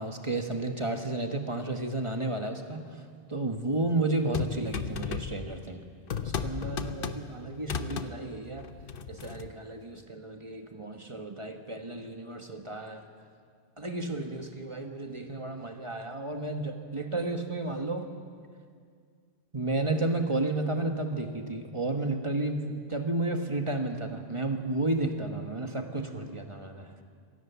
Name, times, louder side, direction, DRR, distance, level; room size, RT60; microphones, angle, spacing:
voice 1, 0.0-3.0 3.3-5.8 6.2-8.7 9.1-13.1 13.8-18.1 19.5-27.0, right 2 dB, 30° right, 5 dB, 1.4 m, -32 dB
sound 1, 4.3-5.7 6.1-7.3 7.6-8.1 8.6-9.5, left 7 dB, 55° left, 1.0 m, -35 dB
24.0 x 17.0 x 7.0 m, 2.1 s
omnidirectional pair, 1.1 m